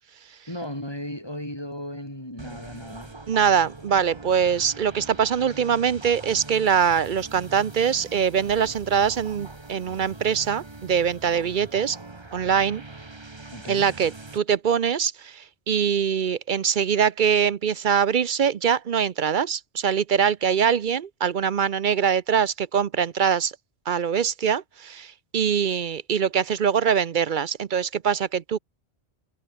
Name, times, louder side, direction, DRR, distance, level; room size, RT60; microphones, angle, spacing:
voice 1, 0.5-3.2 13.5-14.0, left 1 dB, 20° left, 6.6 m, -35 dB
sound 1, 2.4-14.4, right 3 dB, 25° right, 1.4 m, -42 dB
voice 2, 3.3-12.0 12.3-12.8 13.7-23.5 23.9-28.6, right 7 dB, 55° right, 0.8 m, -23 dB
omnidirectional pair, 1.1 m